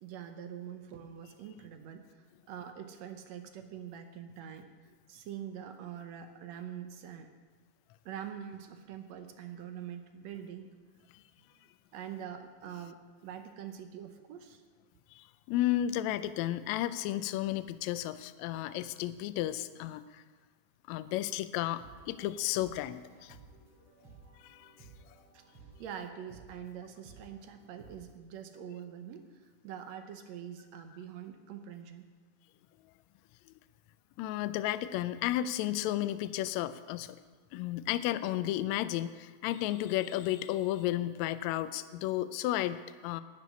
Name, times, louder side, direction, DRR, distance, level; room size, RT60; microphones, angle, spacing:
voice 1, 0.0-4.7 5.1-7.3 8.1-10.7 11.9-14.6 25.3-25.4 25.8-32.1, right 9 dB, 70° right, 7 dB, 1.9 m, -44 dB
voice 2, 15.1-20.2 20.9-23.4 24.4-24.7 34.2-37.2 37.5-43.2, left 13 dB, 80° left, 13 dB, 1.7 m, -33 dB
sound 1, 21.8-28.0, right 3 dB, 55° right, 3.7 m, -56 dB
11.0 x 6.9 x 9.4 m, 1.5 s
omnidirectional pair, 3.5 m